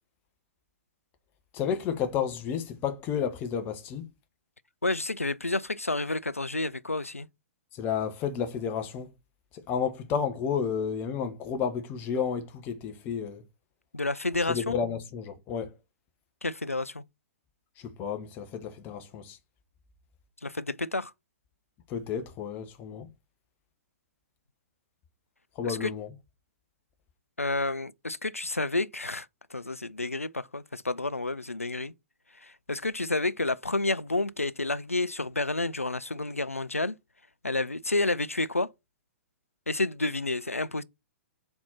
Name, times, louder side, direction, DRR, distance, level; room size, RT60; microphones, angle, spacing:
voice 1, 1.5-4.1 7.7-9.1 9.5-13.4 14.5-15.7 17.8-19.4 21.9-23.1 25.5-26.1, left 7 dB, 25° left, 1.1 m, -31 dB
voice 2, 4.8-7.3 13.9-14.8 16.4-17.0 20.4-21.1 25.6-25.9 27.4-31.9 32.4-37.0 37.4-38.7 39.7-40.8, left 2 dB, 85° left, 0.4 m, -30 dB
4.3 x 4.2 x 5.6 m
figure-of-eight pair, 115°, 7 cm